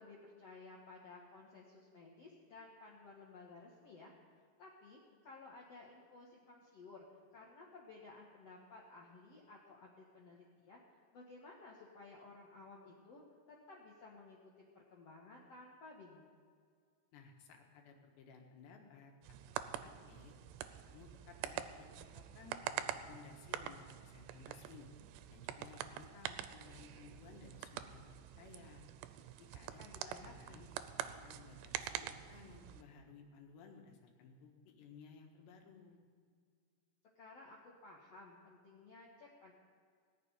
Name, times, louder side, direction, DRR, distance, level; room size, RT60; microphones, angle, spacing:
voice 1, 0.0-10.8 11.1-14.4 14.7-16.3 29.8-30.6 37.2-39.5, left 3 dB, 55° left, -2 dB, 1.7 m, -56 dB
voice 2, 17.1-19.1 19.4-20.4 20.9-24.9 25.3-28.8 29.4-30.7 31.0-36.0, left 5 dB, 80° left, 2 dB, 3.8 m, -58 dB
sound 1, 19.2-32.8, right 11 dB, 85° right, 2.8 m, -46 dB
19.0 x 6.9 x 9.7 m, 2.1 s
omnidirectional pair, 5.0 m